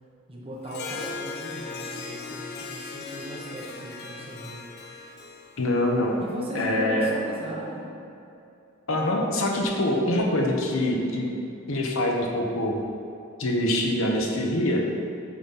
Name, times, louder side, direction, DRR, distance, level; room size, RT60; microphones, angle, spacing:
voice 1, 0.3-4.6 6.2-7.9, equal, 25° right, -4 dB, 1.1 m, -37 dB
Harp, 0.6-6.4, left 4 dB, 45° left, 0.5 m, -38 dB
voice 2, 5.6-6.1 6.5-7.1 8.9-11.3 11.7-12.8 13.4-14.8, left 1 dB, 70° left, 0 dB, 1.0 m, -24 dB
7.3 x 4.0 x 5.7 m, 2.7 s
head